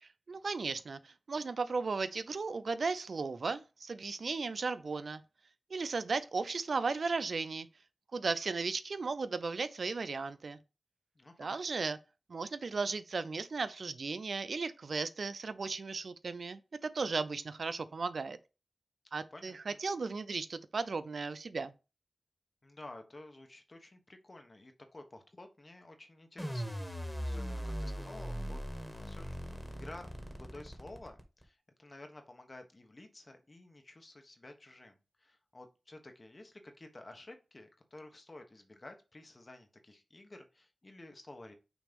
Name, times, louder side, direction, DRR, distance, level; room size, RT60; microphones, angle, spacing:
voice 1, 0.0-5.2 5.7-7.7 8.1-10.6 11.4-12.0 12.3-18.4 19.1-21.7, right 4 dB, 70° right, 0.5 m, -36 dB
voice 2, 11.1-11.6 19.3-19.8 22.6-28.6 28.9-41.5, left 2 dB, 40° left, 1.4 m, -52 dB
sound 1, 26.4-31.4, equal, 5° left, 1.7 m, -39 dB
6.1 x 3.2 x 5.2 m
cardioid pair, 60°, 0 cm